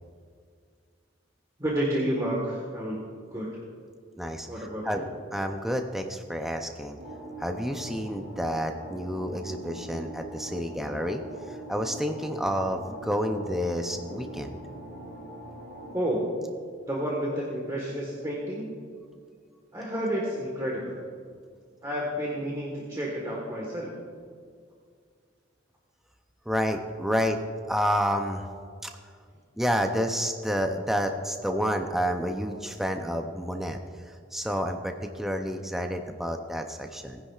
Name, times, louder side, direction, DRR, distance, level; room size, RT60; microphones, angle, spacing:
voice 1, 1.6-3.0 3.3-3.5 4.5-5.0 15.9-16.2 16.9-18.7 19.7-21.0 21.8-23.9, equal, 20° right, -4 dB, 1.4 m, -30 dB
voice 2, 4.2-5.0 5.3-7.0 7.4-11.2 11.5-14.6 26.5-27.4 27.7-28.5 28.8-28.9 29.6-33.8 34.1-37.2, equal, ahead, 4 dB, 0.5 m, -29 dB
sound 1, 7.0-16.0, right 1 dB, 75° right, 1.9 m, -42 dB
19.5 x 9.9 x 2.4 m, 2.1 s
head